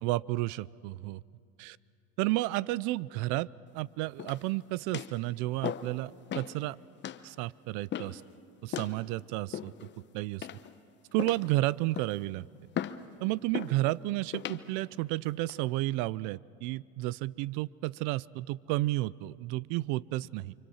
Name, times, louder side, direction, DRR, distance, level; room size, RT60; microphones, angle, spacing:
voice 1, 0.0-1.2 1.6-1.8 2.2-3.5 3.7-6.8 7.2-8.2 8.6-9.7 10.1-10.5 11.1-12.5 13.2-20.5, right 18 dB, 65° right, 23 dB, 0.5 m, -32 dB
sound 1, 4.2-4.5 4.9-5.2 5.6-6.0 6.3-6.5 7.0-7.2 7.9-8.2 8.7-9.0 9.5-9.9 10.4-10.8 11.2-11.5 11.9-12.2 12.7-13.0 13.5-13.8 14.3-14.6 15.2-15.6, left 10 dB, 35° left, 1.0 m, -37 dB
29.0 x 26.0 x 5.7 m, 2.4 s
supercardioid pair, 115°, 33 cm